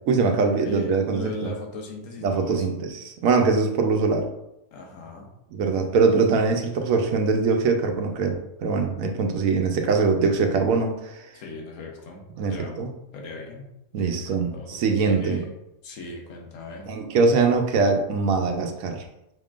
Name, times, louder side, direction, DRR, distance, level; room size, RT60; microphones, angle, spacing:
voice 1, 0.1-1.5 2.2-4.3 5.5-11.2 12.4-12.9 13.9-15.4 16.9-19.0, right 4 dB, 80° right, 4 dB, 1.1 m, -22 dB
voice 2, 0.6-2.6 4.7-5.3 11.3-12.8 13.1-13.7 14.0-15.5 15.8-16.9, left 3 dB, 75° left, 0 dB, 1.3 m, -38 dB
5.7 x 3.6 x 2.4 m, 0.88 s
omnidirectional pair, 1.4 m